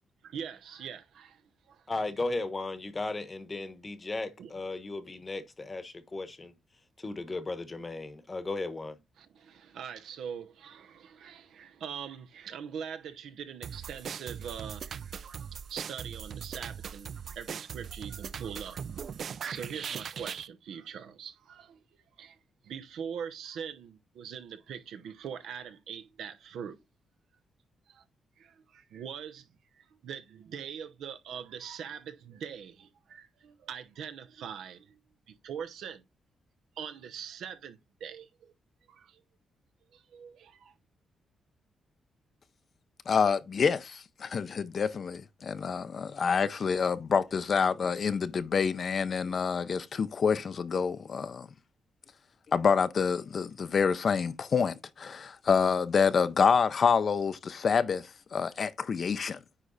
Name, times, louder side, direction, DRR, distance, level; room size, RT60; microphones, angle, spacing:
voice 1, 0.2-1.8 4.4-4.5 9.2-18.8 19.5-21.8 22.2-22.4 22.6-26.8 27.9-28.0 28.4-29.5 29.8-35.0 35.3-36.0 36.8-38.5 38.9-39.2 39.9-40.7, right 7 dB, 85° right, 0.9 m, -42 dB
voice 2, 1.9-6.5 7.0-9.0, left 2 dB, 25° left, 1.0 m, -36 dB
sound 1, 13.6-20.5, right 7 dB, 55° right, 0.4 m, -40 dB
voice 3, 43.1-51.5 52.5-59.4, left 6 dB, 45° left, 0.5 m, -27 dB
9.8 x 3.3 x 3.9 m
cardioid pair, 140°, 0 cm